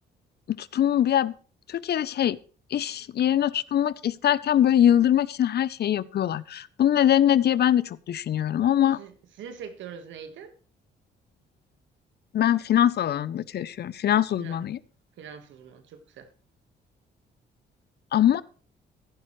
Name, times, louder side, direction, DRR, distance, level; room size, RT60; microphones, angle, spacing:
voice 1, 0.6-1.3 1.7-2.4 2.7-9.0 12.3-14.8 18.1-18.4, left 10 dB, 60° left, 19 dB, 0.6 m, -22 dB
voice 2, 8.9-10.5 14.3-14.7 15.2-16.3, right 7 dB, 80° right, 9 dB, 1.6 m, -43 dB
15.0 x 10.5 x 3.2 m, 0.40 s
supercardioid pair, 65°, 19 cm